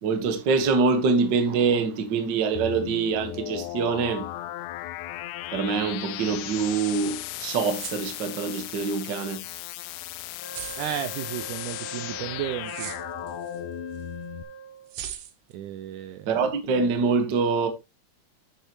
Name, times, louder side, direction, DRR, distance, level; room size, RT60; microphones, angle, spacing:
voice 1, 0.0-4.3 5.5-9.5 16.3-17.7, right 5 dB, 55° right, 1.2 m, -25 dB
sound 1, 2.6-14.4, left 15 dB, 80° left, 1.8 m, -36 dB
sound 2, 7.6-9.0 9.4-9.5 10.5-11.1 12.6-13.6 13.9-14.0 14.9-15.5, right 10 dB, 70° right, 2.4 m, -39 dB
Wind instrument woodwind instrument, 10.4-15.0, right 3 dB, 65° left, 3.5 m, -43 dB
voice 2, 10.8-12.9 15.5-16.3, right 11 dB, 85° right, 1.7 m, -33 dB
9.9 x 6.7 x 3.1 m
omnidirectional pair, 4.2 m